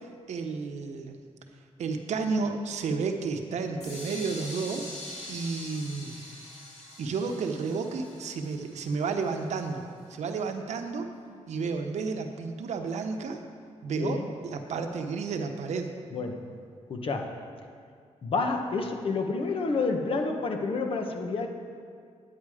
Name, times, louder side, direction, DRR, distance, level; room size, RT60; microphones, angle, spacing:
voice 1, 0.3-1.2 1.8-4.9 5.3-6.2 7.0-9.8 10.1-11.1 11.5-13.4 13.8-15.9, right 4 dB, 80° right, 5 dB, 0.9 m, -31 dB
sound 1, 3.8-9.6, left 1 dB, 75° left, 2.5 m, -44 dB
voice 2, 16.1-16.5 16.9-17.4 18.2-21.5, left 3 dB, 50° left, 4 dB, 1.1 m, -29 dB
9.6 x 9.3 x 4.9 m, 2.1 s
wide cardioid pair, 130°, 12 cm